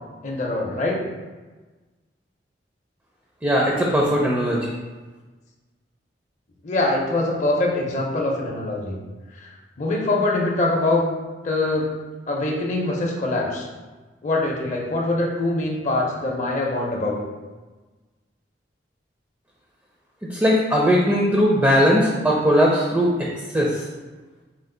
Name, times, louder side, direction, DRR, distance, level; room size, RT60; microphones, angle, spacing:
voice 1, 0.2-1.0 6.6-9.0 9.4-9.5 9.8-11.1 11.4-11.9 12.3-13.7 14.2-17.2, left 2 dB, 40° left, -1 dB, 0.5 m, -23 dB
voice 2, 3.4-4.6 20.3-23.1 23.5-23.7, equal, 10° right, -3 dB, 0.4 m, -18 dB
4.4 x 2.4 x 3.8 m, 1.3 s
head